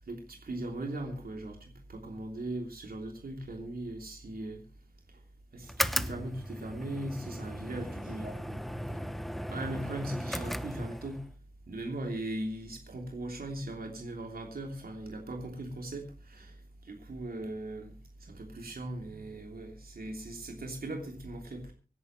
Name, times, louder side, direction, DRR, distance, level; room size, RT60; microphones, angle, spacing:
voice 1, 0.1-4.6 5.5-8.3 9.5-11.2 11.7-16.6 16.8-17.9 18.2-21.7, right 1 dB, 80° right, 3.1 m, -39 dB
sound 1, 5.6-11.3, equal, ahead, 0.9 m, -36 dB
voice 2, 7.5-9.4 14.7-14.9 19.0-19.6, right 2 dB, 60° right, 3.7 m, -52 dB
25.5 x 11.0 x 3.2 m
wide cardioid pair, 105°, 15 cm